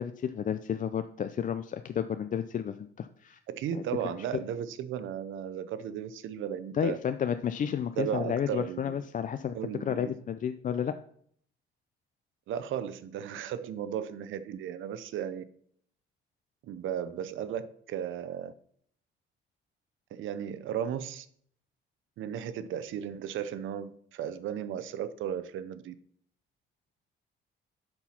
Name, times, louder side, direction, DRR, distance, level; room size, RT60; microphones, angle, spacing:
voice 1, 0.0-3.4 3.7-3.8 6.7-10.9, left 8 dB, 40° left, 0.4 m, -32 dB
voice 2, 3.5-7.0 8.0-9.0 9.5-10.1 12.5-15.4 16.6-18.5 20.1-21.3 22.2-25.9, right 9 dB, 80° right, 0.7 m, -35 dB
10.0 x 4.5 x 5.7 m
cardioid pair, 90°, 20 cm